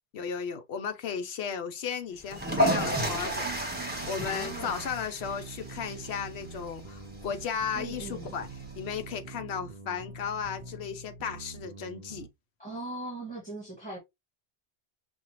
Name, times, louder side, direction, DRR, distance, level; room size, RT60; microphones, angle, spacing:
voice 1, 0.1-3.5 4.0-12.3, left 7 dB, 80° left, 1.0 m, -35 dB
sound 1, 2.2-9.0, equal, 10° right, 1.1 m, -33 dB
sound 2, 2.8-12.3, right 4 dB, 35° right, 0.7 m, -45 dB
voice 2, 4.2-4.8 7.7-8.4 12.6-14.0, right 2 dB, 5° left, 1.6 m, -39 dB
5.3 x 2.4 x 2.9 m
omnidirectional pair, 1.1 m